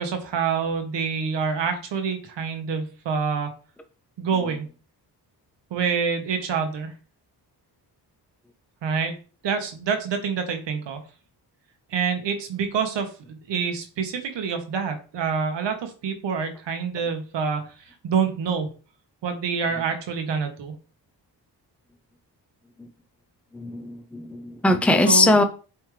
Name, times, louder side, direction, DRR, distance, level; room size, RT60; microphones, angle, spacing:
voice 1, 0.0-3.5 4.2-4.7 5.7-6.9 8.8-9.1 9.4-11.0 11.9-18.7 19.2-20.7 25.0-25.4, right 6 dB, 90° right, 1.4 m, -27 dB
voice 2, 23.5-25.4, left 2 dB, 5° left, 0.7 m, -20 dB
8.5 x 3.5 x 3.3 m
cardioid pair, 75°, 42 cm